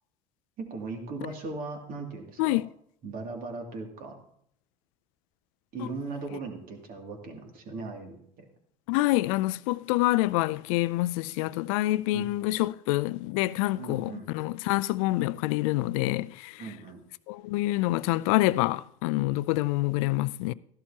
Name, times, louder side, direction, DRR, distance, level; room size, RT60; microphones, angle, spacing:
voice 1, 0.6-2.6 3.0-4.2 5.7-8.4 12.1-12.3 13.8-14.3 16.6-17.0, right 3 dB, 55° right, 2.5 m, -38 dB
voice 2, 8.9-16.6 17.3-20.5, left 18 dB, 75° left, 0.4 m, -27 dB
14.0 x 11.5 x 2.8 m
hypercardioid pair, 80°, 18 cm